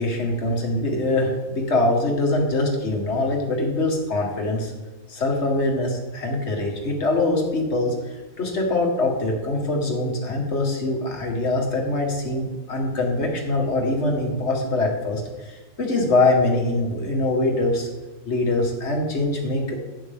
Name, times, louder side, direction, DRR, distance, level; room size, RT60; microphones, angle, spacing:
voice 1, 0.0-4.7 5.1-7.9 8.4-17.9 18.3-19.7, left 2 dB, 55° left, 0 dB, 2.0 m, -23 dB
11.5 x 8.9 x 3.6 m, 1.2 s
omnidirectional pair, 1.4 m